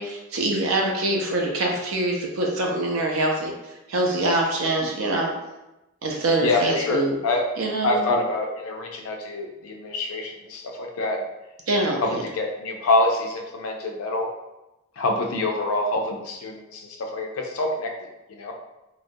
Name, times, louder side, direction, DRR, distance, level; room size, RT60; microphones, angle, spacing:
voice 1, 0.0-3.5 3.9-5.3 6.0-7.2 7.6-8.0 11.7-12.2, right 2 dB, 80° right, 0 dB, 0.5 m, -24 dB
voice 2, 6.4-7.5 7.8-11.2 12.0-14.3 15.0-17.9 18.3-18.5, left 2 dB, 90° left, 2 dB, 0.4 m, -26 dB
2.3 x 2.0 x 2.6 m, 0.96 s
head